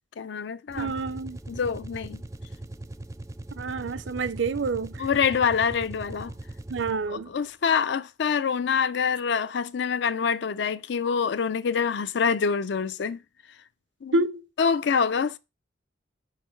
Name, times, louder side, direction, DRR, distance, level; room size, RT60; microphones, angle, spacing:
voice 1, 0.2-0.9 1.5-2.2 5.0-6.3 7.1-13.2 14.0-14.2 14.6-15.4, left 6 dB, 70° left, 0.4 m, -26 dB
sound 1, 0.7-7.2, right 1 dB, 15° right, 0.4 m, -40 dB
voice 2, 0.8-1.4 3.6-5.1 6.7-7.3 14.1-14.5, right 3 dB, 75° right, 0.6 m, -28 dB
6.5 x 4.6 x 4.4 m
head